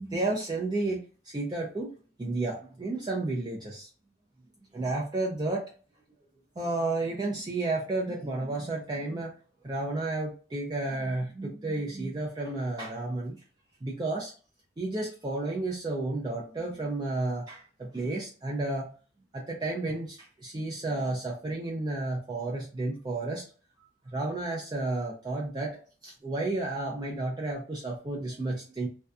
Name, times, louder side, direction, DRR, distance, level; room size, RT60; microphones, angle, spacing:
voice 1, 0.0-1.9 2.2-3.9 4.7-5.7 6.6-9.3 9.6-13.4 13.8-14.3 14.8-18.9 19.3-23.4 24.1-28.9, right 2 dB, 20° right, -3 dB, 0.3 m, -32 dB
2.6 x 2.2 x 2.3 m, 0.38 s
head